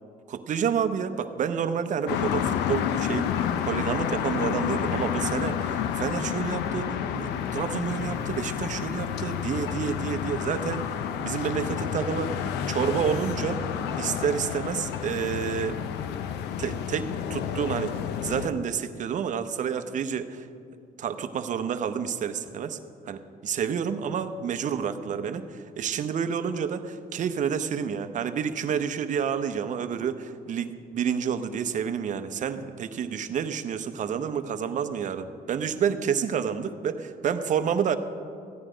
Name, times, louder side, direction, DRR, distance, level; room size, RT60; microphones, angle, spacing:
voice 1, 0.3-10.9 11.2-12.3 12.7-13.6 14.0-15.8 16.6-20.5 21.0-22.8 23.0-38.0, right 7 dB, 50° right, 9 dB, 0.8 m, -29 dB
sound 1, 2.1-18.5, left 8 dB, 85° left, 0.7 m, -30 dB
14.5 x 9.9 x 5.0 m, 2.4 s
cardioid pair, 110°, 17 cm